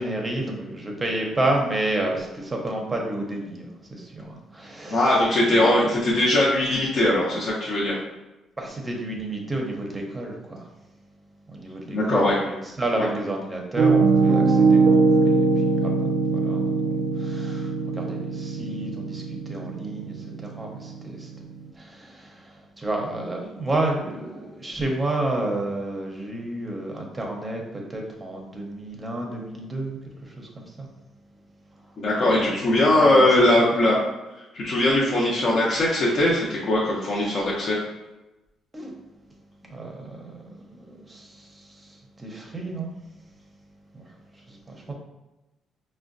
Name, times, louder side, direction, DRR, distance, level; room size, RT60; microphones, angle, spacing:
voice 1, 0.0-5.8 6.1-6.3 8.6-10.7 11.5-21.3 21.7-30.9 31.8-32.6 33.0-33.9 35.3-35.4 37.2-37.4 38.7-38.9 39.7-42.9 43.9-44.9, right 2 dB, 20° right, 0 dB, 0.6 m, -31 dB
voice 2, 4.9-8.0 11.9-12.4 13.0-13.1 32.0-34.0 34.5-37.8, left 1 dB, 60° left, -6 dB, 0.6 m, -20 dB
Piano, 13.8-21.6, right 4 dB, 80° right, 0.3 m, -22 dB
3.7 x 2.1 x 2.5 m, 1.0 s
cardioid pair, 90°, 0 cm